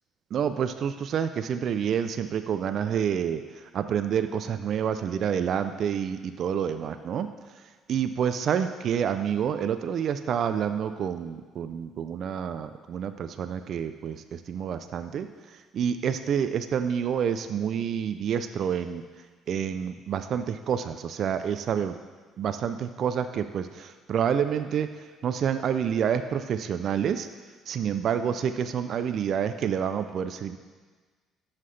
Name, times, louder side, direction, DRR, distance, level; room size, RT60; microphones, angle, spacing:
voice 1, 0.3-22.0 22.4-27.3 27.7-30.6, right 8 dB, 60° right, 9 dB, 0.4 m, -28 dB
13.5 x 5.7 x 3.3 m, 1.4 s
supercardioid pair, 80°, 0 cm